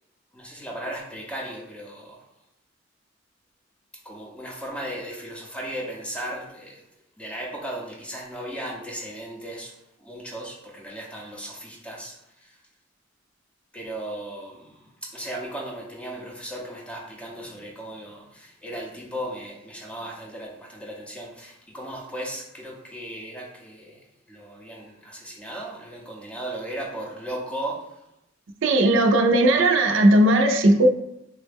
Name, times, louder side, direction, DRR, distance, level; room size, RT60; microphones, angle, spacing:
voice 1, 0.3-2.2 4.0-6.8 7.2-12.6 13.7-28.0, right 1 dB, 5° left, -1 dB, 0.5 m, -36 dB
voice 2, 28.6-30.9, right 1 dB, 75° right, 4 dB, 0.4 m, -17 dB
3.5 x 2.1 x 3.4 m, 0.80 s
head